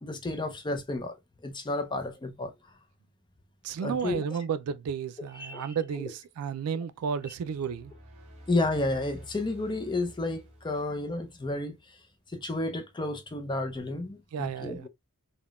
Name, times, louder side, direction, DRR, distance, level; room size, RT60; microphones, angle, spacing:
voice 1, 0.0-1.2 1.4-2.5 3.8-4.2 5.4-5.7 8.5-11.8 12.3-14.9, left 2 dB, 20° left, 0.5 m, -31 dB
voice 2, 3.6-7.9 14.3-14.9, right 7 dB, 75° right, 0.3 m, -32 dB
sound 1, 7.3-11.9, equal, 30° right, 1.2 m, -51 dB
3.7 x 2.2 x 2.3 m
head